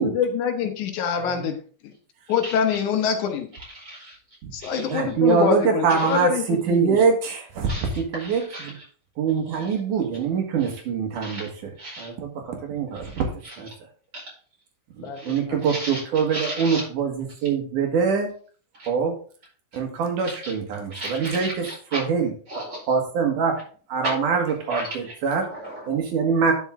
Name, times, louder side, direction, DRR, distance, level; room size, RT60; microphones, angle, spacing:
voice 1, 0.0-1.6 2.3-3.5 4.5-7.1 15.0-15.6, left 7 dB, 75° left, 6 dB, 2.4 m, -25 dB
voice 2, 3.6-4.2 4.6-5.0 5.9-6.2 7.6-8.8 9.5-9.9 10.6-10.8 11.2-11.5 11.8-12.1 12.9-13.6 14.1-14.3 15.1-16.0 16.3-16.9 18.7-18.9 20.2-20.5 20.9-22.0 22.5-22.9 24.0-24.2 24.7-25.2 25.5-25.9, right 1 dB, 30° right, -3 dB, 5.4 m, -36 dB
voice 3, 4.8-7.7 8.0-8.7 9.2-11.5 12.0-13.3 13.6-13.7 15.0-18.3 18.9-19.1 19.7-21.5 21.9-22.3 22.9-23.6 23.9-25.5 25.9-26.5, right 6 dB, 75° right, 2 dB, 3.1 m, -24 dB
10.5 x 6.1 x 3.7 m, 0.42 s
omnidirectional pair, 3.6 m